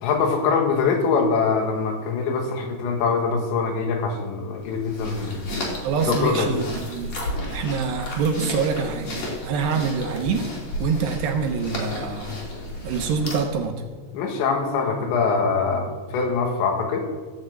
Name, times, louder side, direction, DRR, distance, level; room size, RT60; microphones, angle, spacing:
voice 1, 0.0-5.4 6.1-6.5 14.1-17.1, left 5 dB, 75° left, 3 dB, 3.7 m, -23 dB
sound 1, 4.6-13.6, left 1 dB, 40° left, 3.8 m, -33 dB
voice 2, 5.8-6.6 6.9-7.2 7.5-9.1 9.4-10.5 10.8-12.4 12.8-13.8, right 5 dB, 75° right, 4 dB, 3.0 m, -25 dB
14.5 x 7.1 x 7.9 m, 1.4 s
omnidirectional pair, 5.3 m